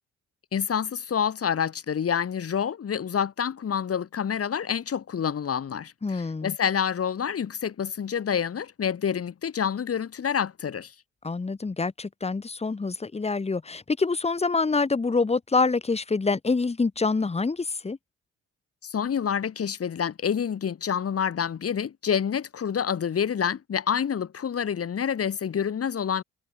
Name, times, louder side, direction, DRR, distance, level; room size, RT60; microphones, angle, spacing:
voice 1, 0.5-10.9 18.8-26.2, left 7 dB, 50° left, 4.6 m, -28 dB
voice 2, 6.0-6.5 11.2-18.0, left 4 dB, 20° left, 1.5 m, -26 dB
cardioid pair, 90°, 30 cm